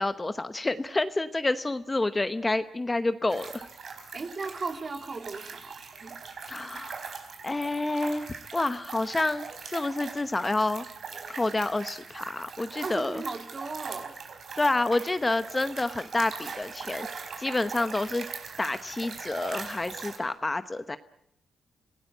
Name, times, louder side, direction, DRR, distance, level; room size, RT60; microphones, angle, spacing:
voice 1, 0.0-3.7 6.5-7.2 7.4-10.9 11.3-13.2 14.6-17.1 17.4-18.3 18.6-21.0, left 2 dB, 20° left, 11 dB, 0.9 m, -29 dB
sound 1, 3.3-20.2, right 5 dB, 60° right, 4.5 m, -41 dB
voice 2, 4.1-6.2 12.8-14.1 17.4-17.7, right 4 dB, 40° right, 5 dB, 2.7 m, -37 dB
27.0 x 17.5 x 9.2 m, 0.78 s
cardioid pair, 105°, 0 cm